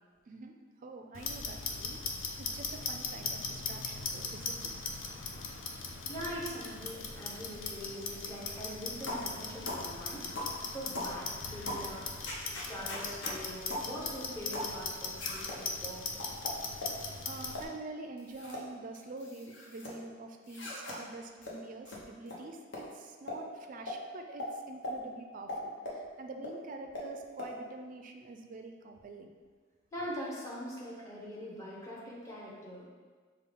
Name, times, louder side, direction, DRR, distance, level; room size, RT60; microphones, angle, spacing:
voice 1, 0.3-2.0 2.4-4.7 16.8-29.4, right 2 dB, 45° right, 4 dB, 0.3 m, -46 dB
Clock, 1.1-17.6, left 4 dB, 85° left, 0.5 m, -39 dB
voice 2, 6.0-10.3 10.7-12.1 12.7-16.1 29.9-32.9, equal, 15° left, -6 dB, 0.9 m, -42 dB
sound 1, 9.1-9.3 9.7-9.9 10.4-10.6 10.9-11.1 11.7-11.9 12.3-13.4 13.7-13.9 14.5-14.7 15.2-15.6 16.2-17.0 17.5-17.7 18.2-18.6 18.9-19.9 20.5-21.0 21.4-21.5 21.9-22.0 22.3-22.4 22.7-22.8 23.3-23.4 23.9-24.0 24.4-24.5 24.8-25.0 25.5-26.0 26.4-26.5 26.9-27.1 27.4-27.5, left 1 dB, 65° left, 0.9 m, -39 dB
5.3 x 2.3 x 3.5 m, 1.5 s
head